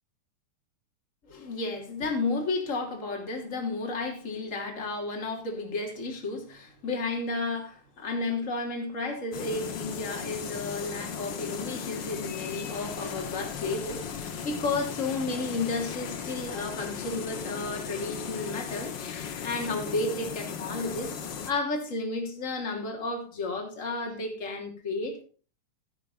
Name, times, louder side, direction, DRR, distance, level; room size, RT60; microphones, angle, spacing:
voice 1, 1.3-18.9 19.4-21.1 21.5-25.2, left 3 dB, 25° left, 3.0 m, -32 dB
sound 1, 9.3-21.5, left 7 dB, 55° left, 1.2 m, -37 dB
15.5 x 10.5 x 2.6 m
omnidirectional pair, 3.8 m